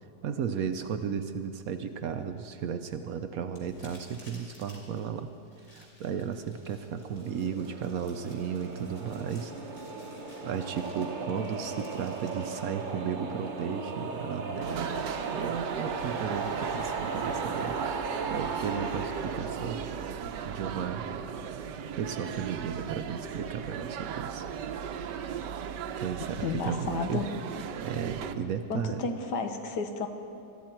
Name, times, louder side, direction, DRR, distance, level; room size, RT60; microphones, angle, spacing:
voice 1, 0.2-5.3 5.7-9.5 10.4-14.9 15.2-17.8 18.3-19.8 20.4-21.1 22.0-24.5 26.0-27.2 27.8-29.1, right 7 dB, 65° right, 8 dB, 1.0 m, -34 dB
sound 1, 3.5-12.6, left 1 dB, 45° left, 3.4 m, -57 dB
sound 2, 6.8-21.2, right 4 dB, 35° right, 0.8 m, -37 dB
sound 3, 14.6-28.3, right 8 dB, 85° right, 1.3 m, -37 dB
voice 2, 26.4-27.3 28.7-30.1, left 4 dB, 80° left, 5 dB, 1.7 m, -32 dB
21.0 x 13.5 x 4.4 m, 2.6 s
omnidirectional pair, 1.8 m